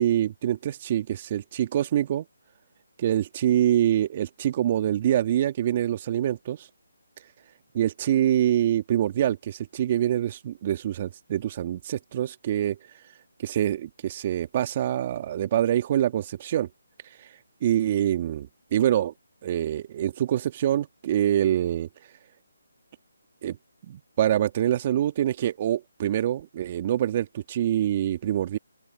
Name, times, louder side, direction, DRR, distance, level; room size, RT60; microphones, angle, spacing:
voice 1, 0.0-2.3 3.0-6.6 7.7-12.8 13.4-16.7 17.6-18.5 18.7-19.1 19.4-21.9 23.4-23.6 23.9-28.6, right 11 dB, 35° right, 2.0 m, -25 dB
open air
figure-of-eight pair, 155°, 0 cm